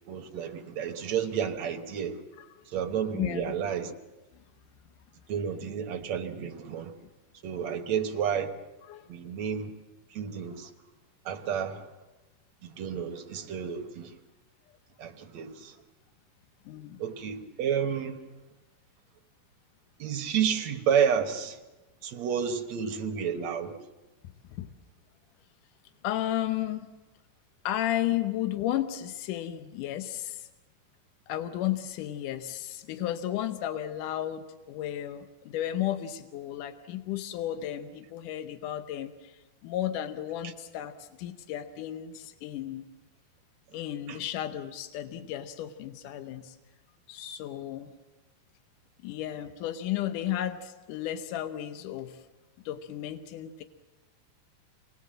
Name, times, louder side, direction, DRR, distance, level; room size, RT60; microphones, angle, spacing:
voice 1, 0.1-2.2 2.7-3.9 5.3-6.9 7.4-8.5 9.1-9.7 10.1-10.7 11.3-11.9 12.6-14.1 15.0-15.7 17.0-18.2 20.0-21.6 22.0-23.8 44.1-44.2, right 8 dB, 60° right, 4 dB, 1.9 m, -30 dB
voice 2, 3.1-3.5 8.9-9.0 16.7-17.0 24.5-24.7 26.0-26.8 27.6-30.5 31.3-42.9 43.7-46.6 47.1-47.9 49.0-52.2 52.7-53.6, left 12 dB, 75° left, 8 dB, 2.0 m, -33 dB
27.5 x 20.0 x 7.6 m, 1.1 s
omnidirectional pair, 4.6 m